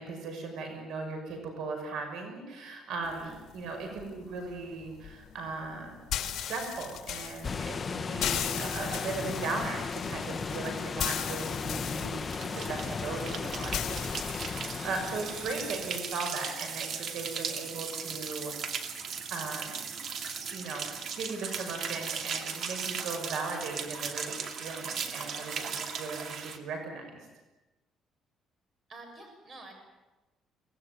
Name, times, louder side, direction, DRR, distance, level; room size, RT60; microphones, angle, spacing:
voice 1, 0.0-18.5 19.3-19.8 20.5-27.2, right 3 dB, 70° right, 4 dB, 6.1 m, -38 dB
sound 1, 3.0-14.5, left 10 dB, 60° left, 2.7 m, -38 dB
sound 2, 7.4-16.1, left 5 dB, 25° left, 0.9 m, -36 dB
sound 3, 12.3-26.6, right 6 dB, 55° right, 2.6 m, -37 dB
voice 2, 28.9-29.7, right 2 dB, 35° right, 4 dB, 6.5 m, -49 dB
24.0 x 19.5 x 9.7 m, 1.1 s
cardioid pair, 145°, 0 cm